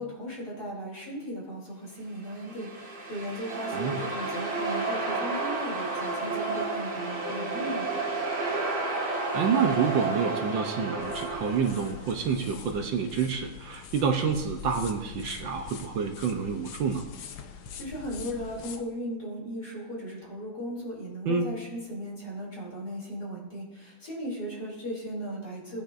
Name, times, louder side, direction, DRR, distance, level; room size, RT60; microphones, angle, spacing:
voice 1, 0.0-8.0 17.5-25.8, equal, 45° left, -4 dB, 3.7 m, -37 dB
sound 1, 2.2-12.1, right 3 dB, 30° right, 2.1 m, -31 dB
voice 2, 9.1-17.1 21.3-21.5, right 6 dB, 65° right, 3 dB, 1.5 m, -28 dB
sound 2, 11.0-18.8, left 7 dB, 75° left, 1.6 m, -43 dB
18.0 x 9.3 x 2.6 m, 1.1 s
omnidirectional pair, 2.4 m